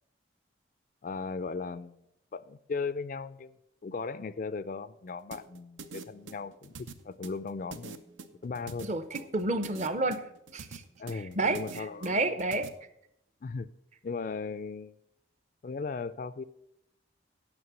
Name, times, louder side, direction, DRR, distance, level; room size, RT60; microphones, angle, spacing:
voice 1, 1.0-2.0 2.3-3.5 3.8-8.0 8.4-8.9 11.0-12.3 13.4-13.7 14.0-15.0 15.6-16.4, left 4 dB, 45° left, 15 dB, 0.3 m, -37 dB
sound 1, 5.3-12.7, right 4 dB, 90° right, 0.7 m, -44 dB
voice 2, 8.8-10.2 10.5-10.8 11.1-12.7, right 2 dB, 40° right, 11 dB, 0.7 m, -30 dB
9.4 x 6.5 x 6.1 m, 0.78 s
head